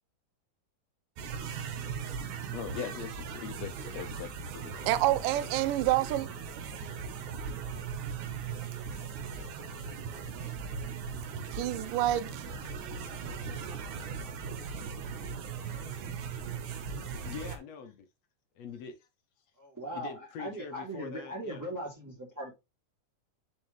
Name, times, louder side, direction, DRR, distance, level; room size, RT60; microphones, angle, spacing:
sound 1, 1.2-17.6, right 6 dB, 70° right, 2.5 m, -39 dB
voice 1, 2.5-5.5, left 10 dB, 80° left, 1.5 m, -42 dB
voice 2, 4.9-6.3 11.5-12.4, right 14 dB, 85° right, 2.3 m, -27 dB
sound 2, 8.5-17.5, left 4 dB, 45° left, 2.2 m, -52 dB
voice 3, 17.2-18.1 18.6-19.1 19.9-21.7, left 6 dB, 65° left, 1.8 m, -43 dB
voice 4, 19.6-22.5, right 1 dB, 5° right, 2.5 m, -39 dB
7.1 x 5.5 x 3.2 m
omnidirectional pair, 3.7 m